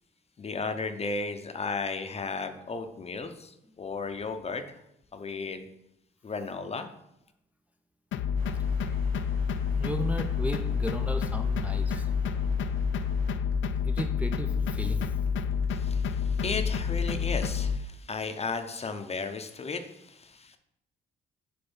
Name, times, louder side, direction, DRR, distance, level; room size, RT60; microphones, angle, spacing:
voice 1, 0.4-4.8 5.1-5.7 6.2-6.9 15.7-20.6, left 4 dB, 30° left, 8 dB, 0.7 m, -35 dB
sound 1, 8.1-17.8, left 6 dB, 75° left, 0.5 m, -28 dB
sound 2, 8.3-13.4, right 2 dB, 45° right, 2.8 m, -54 dB
voice 2, 8.4-9.0 9.8-12.1 13.9-15.1, right 1 dB, 5° right, 4 dB, 0.5 m, -36 dB
sound 3, 11.3-17.6, right 3 dB, 90° right, 1.2 m, -49 dB
6.8 x 3.5 x 5.5 m, 0.81 s
cardioid pair, 90°, 20 cm